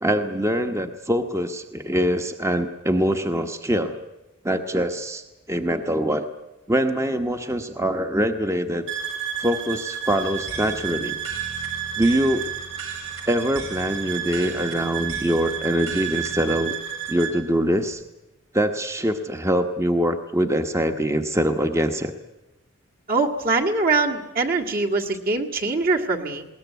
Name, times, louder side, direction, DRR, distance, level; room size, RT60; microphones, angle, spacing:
voice 1, 0.0-4.0 4.4-5.2 5.5-6.2 6.7-8.9 9.4-11.2 12.0-12.4 13.3-16.7 17.1-18.0 18.5-22.1, equal, 15° right, 7 dB, 1.0 m, -23 dB
sound 1, 8.9-17.4, right 9 dB, 60° right, 4.5 m, -31 dB
sound 2, 10.2-16.7, right 2 dB, 80° right, 4.6 m, -40 dB
voice 2, 23.1-26.5, right 3 dB, 45° right, 1 dB, 1.9 m, -23 dB
21.0 x 18.5 x 9.3 m, 0.99 s
head